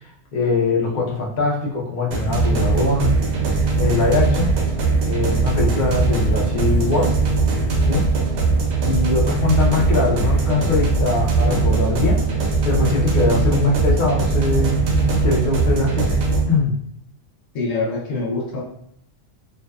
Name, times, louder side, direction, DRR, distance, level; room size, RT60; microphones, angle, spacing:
voice 1, 0.0-3.1 3.8-4.5 5.0-7.1 7.9-8.0 8.8-12.2 12.6-14.8 15.2-16.2 16.5-16.7, left 3 dB, 50° left, -2 dB, 0.6 m, -22 dB
sound 1, 2.1-16.4, right 4 dB, 75° right, 0.9 m, -20 dB
voice 2, 17.5-18.6, left 3 dB, 85° left, -1 dB, 1.0 m, -24 dB
2.6 x 2.1 x 2.3 m, 0.68 s
omnidirectional pair, 1.3 m